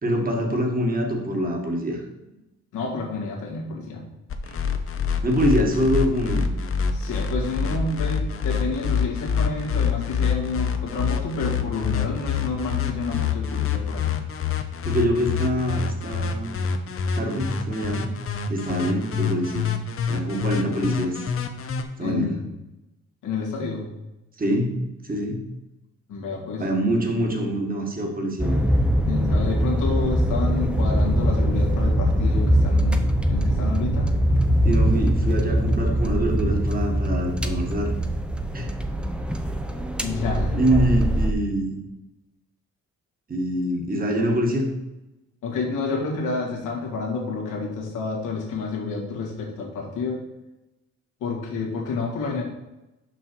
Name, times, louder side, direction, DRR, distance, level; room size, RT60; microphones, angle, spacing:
voice 1, 0.0-2.0 4.4-4.6 5.2-6.5 14.4-14.5 14.8-16.5 17.2-18.1 18.5-19.7 20.1-21.2 22.0-22.4 24.4-24.8 25.0-25.4 26.6-28.6 34.6-37.9 38.5-38.7 40.5-41.8 43.3-44.7, equal, 30° right, 1 dB, 1.8 m, -24 dB
voice 2, 2.7-4.1 6.9-14.2 22.0-22.4 23.2-23.9 26.1-26.7 29.1-34.1 40.0-40.6 45.4-50.3 51.2-52.4, left 4 dB, 90° left, 0 dB, 1.9 m, -29 dB
sound 1, 4.3-21.8, left 6 dB, 45° left, 0.9 m, -26 dB
sound 2, 28.4-41.3, equal, 5° right, 0.7 m, -22 dB
6.1 x 5.6 x 4.6 m, 0.97 s
cardioid pair, 90°, 30 cm